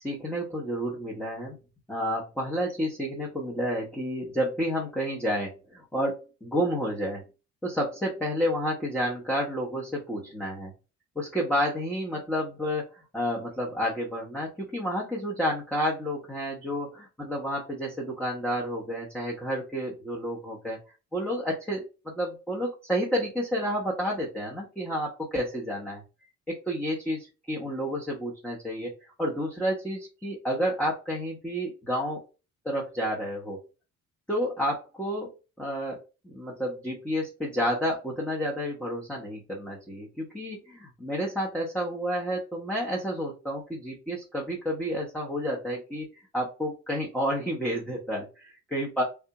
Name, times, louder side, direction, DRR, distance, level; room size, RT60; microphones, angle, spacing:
voice 1, 0.0-1.6 1.9-7.2 7.6-10.7 11.1-20.8 21.1-26.0 26.5-28.9 29.2-32.2 32.6-33.6 34.3-35.3 35.6-46.1 46.3-49.0, equal, 5° left, -4 dB, 1.0 m, -30 dB
3.5 x 2.6 x 2.9 m, 0.31 s
cardioid pair, 90°, 30 cm